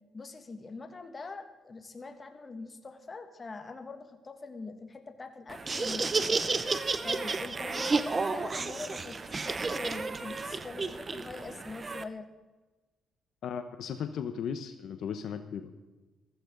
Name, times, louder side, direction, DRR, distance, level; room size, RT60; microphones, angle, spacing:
voice 1, 0.1-6.5 7.0-12.3, left 3 dB, 30° left, 6 dB, 1.8 m, -43 dB
Laughter, 5.5-12.0, right 4 dB, 30° right, 0.8 m, -32 dB
voice 2, 13.4-15.7, left 7 dB, 70° left, 9 dB, 0.9 m, -36 dB
15.5 x 14.5 x 3.9 m, 1.2 s
cardioid pair, 90°, 0 cm